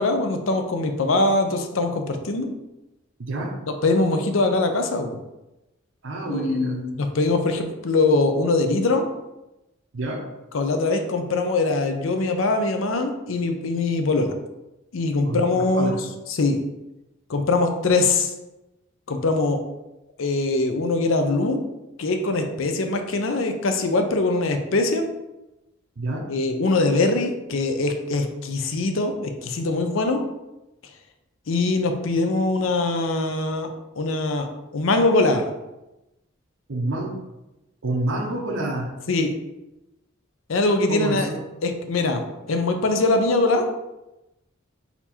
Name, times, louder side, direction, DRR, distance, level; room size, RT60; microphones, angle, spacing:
voice 1, 0.0-2.5 3.8-5.2 6.3-9.1 10.5-14.3 14.9-16.0 16.3-16.6 17.3-18.3 19.1-19.6 20.2-21.7 22.0-25.1 26.3-30.2 31.5-33.7 34.0-35.5 39.1-39.3 40.5-41.3 41.6-42.2 42.5-43.7, left 2 dB, 75° left, 6 dB, 0.6 m, -22 dB
voice 2, 3.2-3.5 6.0-6.8 9.9-10.2 15.3-16.0 26.0-26.2 36.7-37.1 37.8-38.9 40.9-41.4, right 2 dB, 65° right, 0 dB, 0.7 m, -28 dB
4.2 x 2.8 x 4.2 m, 0.97 s
head